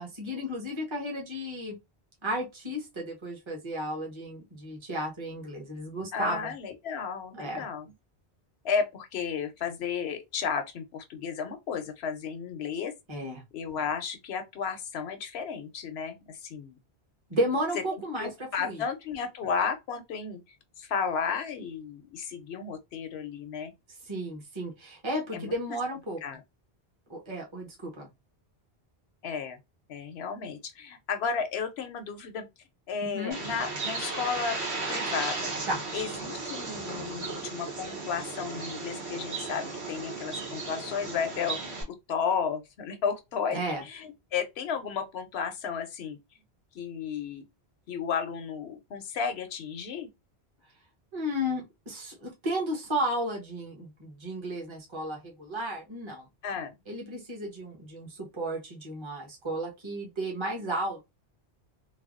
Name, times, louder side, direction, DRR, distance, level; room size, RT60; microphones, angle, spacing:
voice 1, 0.0-1.8 2.2-6.5 7.4-7.7 13.1-13.4 17.3-18.8 24.0-26.2 27.1-28.1 33.0-33.4 35.7-35.8 43.5-43.8 51.1-56.3 56.9-61.0, equal, 25° right, 1.1 m, -33 dB
voice 2, 6.1-7.9 8.6-12.9 13.5-16.8 18.2-20.4 20.8-23.7 25.3-25.5 26.2-26.4 29.2-29.6 29.9-32.5 32.9-34.6 34.9-35.5 35.9-41.6 41.9-46.2 46.7-47.4 47.9-50.1 56.4-56.7, left 6 dB, 75° left, 0.9 m, -33 dB
Bird, 33.3-41.8, right 3 dB, 85° right, 1.5 m, -35 dB
3.3 x 2.3 x 2.4 m
omnidirectional pair, 1.1 m